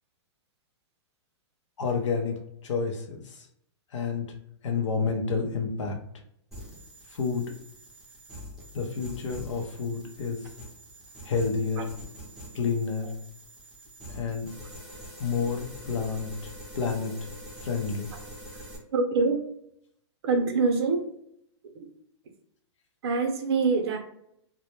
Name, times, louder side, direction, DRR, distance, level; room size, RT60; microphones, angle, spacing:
voice 1, 1.8-3.5 3.9-4.4 4.6-6.0 7.1-7.6 8.7-10.5 11.2-11.8 12.5-13.1 14.1-14.5 15.2-17.2 17.6-18.1, left 5 dB, 85° left, 3 dB, 0.6 m, -30 dB
sound 1, 6.5-18.8, equal, ahead, 0.5 m, -45 dB
voice 2, 18.9-19.4 20.2-21.0 23.0-24.0, right 4 dB, 60° right, 5 dB, 0.6 m, -24 dB
2.1 x 2.0 x 2.9 m, 0.72 s
hypercardioid pair, 150°, 15 cm